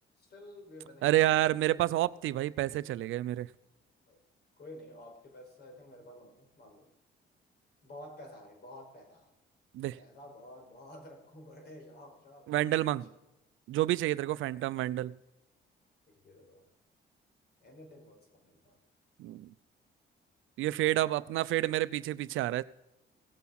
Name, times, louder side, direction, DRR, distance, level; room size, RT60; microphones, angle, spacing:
voice 1, 0.2-1.2 4.1-4.2 4.6-6.9 7.8-9.3 10.0-12.5 12.9-13.1 14.5-14.8 16.1-16.7 17.6-18.8, left 1 dB, 55° left, 4.8 m, -51 dB
voice 2, 1.0-3.5 9.7-10.0 12.5-13.0 13.7-15.1 19.2-19.5 20.6-22.6, right 15 dB, 80° right, 0.5 m, -29 dB
17.5 x 8.4 x 4.1 m
cardioid pair, 90°, 20 cm